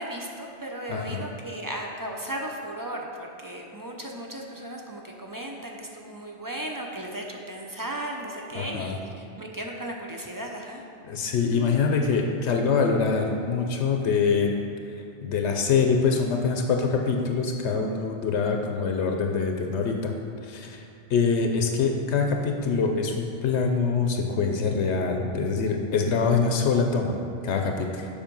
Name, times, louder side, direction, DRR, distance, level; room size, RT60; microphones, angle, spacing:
voice 1, 0.0-10.8, right 1 dB, 25° right, 0 dB, 0.4 m, -36 dB
voice 2, 0.9-1.2 8.5-9.0 11.1-14.5 15.2-20.1 20.4-20.8 21.1-27.2 27.4-28.1, left 5 dB, 75° left, 3 dB, 0.9 m, -24 dB
7.2 x 5.0 x 5.3 m, 2.4 s
omnidirectional pair, 1.2 m